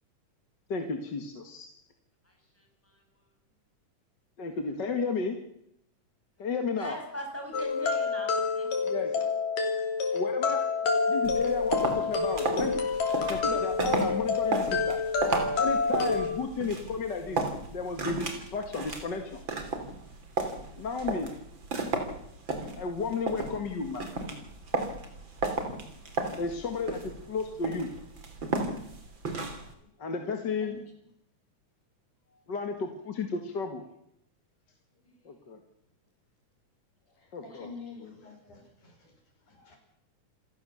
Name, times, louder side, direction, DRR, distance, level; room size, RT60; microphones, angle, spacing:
voice 1, 0.7-1.8 4.4-5.4 6.4-7.0 8.8-9.2 10.1-10.6 11.1-12.7 13.3-15.0 15.6-17.4 17.7-19.4 20.8-21.3 22.8-24.1 26.3-27.0 27.3-27.9 30.0-30.8 32.5-33.8 35.3-35.6 37.3-37.7, left 4 dB, 40° left, 5 dB, 2.1 m, -33 dB
voice 2, 2.3-3.0 6.8-9.0 37.5-37.6, equal, 5° left, 2 dB, 5.9 m, -41 dB
sound 1, 7.5-16.3, left 4 dB, 90° left, 4.6 m, -28 dB
sound 2, 11.2-29.7, right 3 dB, 35° right, 3.6 m, -34 dB
voice 3, 37.4-39.1 39.5-39.8, left 4 dB, 70° left, 3 dB, 6.8 m, -47 dB
28.0 x 16.0 x 7.1 m, 0.75 s
omnidirectional pair, 3.7 m